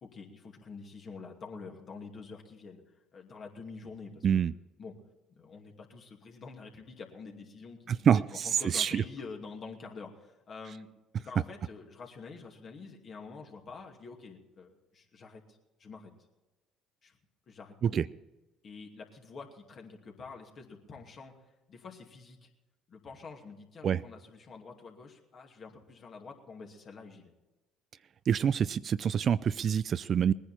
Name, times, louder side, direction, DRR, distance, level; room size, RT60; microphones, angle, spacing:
voice 1, 0.0-2.8 3.1-4.4 4.8-4.9 5.3-10.9 11.2-15.4 15.8-16.1 17.0-17.2 17.5-18.0 18.6-21.3 21.7-22.5 22.9-27.3, left 4 dB, 45° left, 2 dB, 2.6 m, -47 dB
voice 2, 7.9-8.5 8.7-9.0 17.8-18.1 23.8-24.0 28.3-30.3, right 8 dB, 50° right, 17 dB, 0.4 m, -26 dB
20.5 x 10.0 x 4.4 m, 1.1 s
hypercardioid pair, 60°, 0 cm